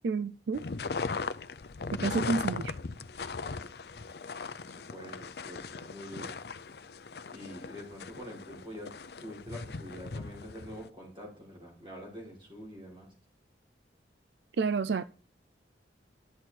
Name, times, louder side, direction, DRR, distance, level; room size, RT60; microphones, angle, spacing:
voice 1, 0.0-0.6 2.0-2.7 14.6-15.0, right 4 dB, 75° right, 0.4 m, -29 dB
sound 1, 0.5-10.9, left 4 dB, 60° left, 0.6 m, -38 dB
voice 2, 4.6-6.4 7.3-8.9 9.2-13.1, equal, 30° right, 5.9 m, -46 dB
12.0 x 8.0 x 4.5 m
head